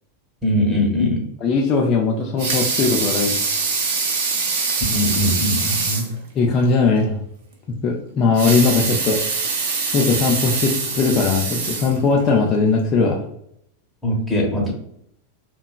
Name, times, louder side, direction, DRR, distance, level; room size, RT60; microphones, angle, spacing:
voice 1, 0.4-1.2 4.9-6.1 14.0-14.7, left 1 dB, ahead, -3 dB, 0.9 m, -21 dB
voice 2, 1.4-3.4 6.3-7.2 7.7-9.2 9.9-13.3, left 4 dB, 35° left, 0 dB, 0.4 m, -19 dB
Water tap faucet / Sink (filling or washing) / Liquid, 2.2-6.2 6.6-6.7 7.0-7.1 8.2-12.4 13.0-13.1, right 4 dB, 50° right, 0.6 m, -24 dB
2.8 x 2.2 x 2.4 m, 0.73 s
figure-of-eight pair, 90°, 0 cm